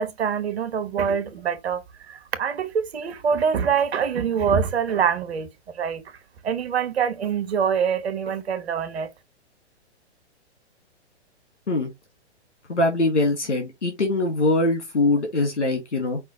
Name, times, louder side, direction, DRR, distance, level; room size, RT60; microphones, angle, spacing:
voice 1, 0.0-5.5 5.7-6.0 6.4-9.1, right 7 dB, 60° right, 1.3 m, -25 dB
voice 2, 12.7-16.2, left 2 dB, 85° left, 1.6 m, -22 dB
5.5 x 2.2 x 4.3 m
figure-of-eight pair, 120°, 35 cm